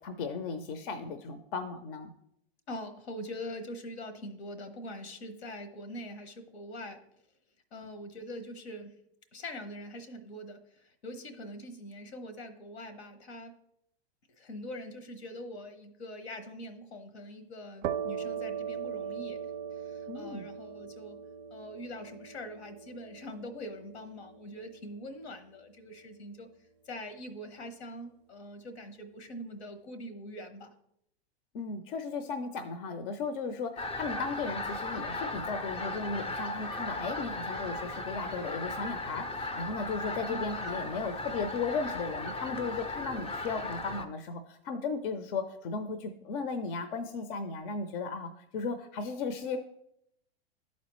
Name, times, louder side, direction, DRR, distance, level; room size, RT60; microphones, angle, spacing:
voice 1, 0.0-2.1 20.1-20.5 31.5-49.6, left 4 dB, 55° left, 9 dB, 0.6 m, -36 dB
voice 2, 2.7-7.0 7.7-8.9 9.3-13.5 14.4-19.4 19.7-21.2 21.5-26.5 26.9-30.7 40.3-40.5, left 1 dB, 80° left, 9 dB, 1.1 m, -43 dB
sound 1, 17.8-25.3, right 8 dB, 40° right, 0.4 m, -40 dB
sound 2, 33.8-44.0, left 2 dB, 15° left, 0.5 m, -37 dB
11.5 x 4.2 x 3.0 m, 0.76 s
hypercardioid pair, 115°, 32 cm